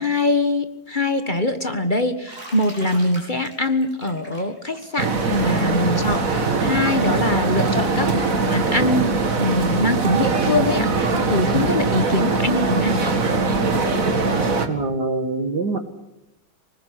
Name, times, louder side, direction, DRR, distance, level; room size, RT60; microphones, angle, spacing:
voice 1, 0.0-13.1, left 2 dB, 30° left, 8 dB, 1.5 m, -23 dB
Bathtub (filling or washing), 2.3-7.9, right 1 dB, 25° right, 7.7 m, -42 dB
sound 1, 5.0-14.7, right 3 dB, 50° right, 2.3 m, -21 dB
voice 2, 14.7-15.8, right 3 dB, 70° right, 8 dB, 2.7 m, -24 dB
25.5 x 19.5 x 9.5 m, 0.91 s
omnidirectional pair, 1.8 m